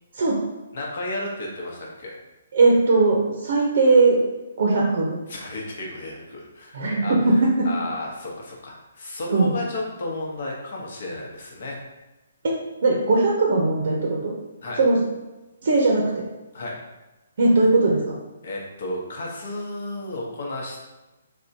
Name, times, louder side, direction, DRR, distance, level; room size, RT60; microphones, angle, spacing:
voice 1, 0.7-2.2 5.3-11.8 14.6-14.8 16.5-16.7 18.4-20.9, left 2 dB, 60° left, -2 dB, 0.9 m, -33 dB
voice 2, 2.5-4.2 4.6-5.2 6.7-7.3 9.3-9.5 12.4-12.6 12.8-14.3 14.8-15.0 15.6-16.2 17.4-18.0, right 3 dB, 60° right, -2 dB, 0.6 m, -19 dB
3.5 x 2.2 x 2.6 m, 1.1 s
hypercardioid pair, 150°, 0 cm